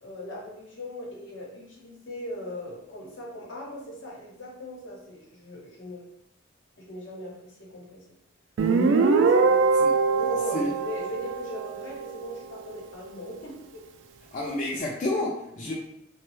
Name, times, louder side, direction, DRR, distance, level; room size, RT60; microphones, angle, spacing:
voice 1, 0.0-6.1 6.8-8.0 9.1-13.8, left 1 dB, 75° left, -3 dB, 0.9 m, -39 dB
Guitar, 8.6-12.0, right 4 dB, 75° right, 0.3 m, -22 dB
voice 2, 14.3-15.7, left 1 dB, 40° left, -2 dB, 0.3 m, -29 dB
3.0 x 2.1 x 3.0 m, 0.80 s
head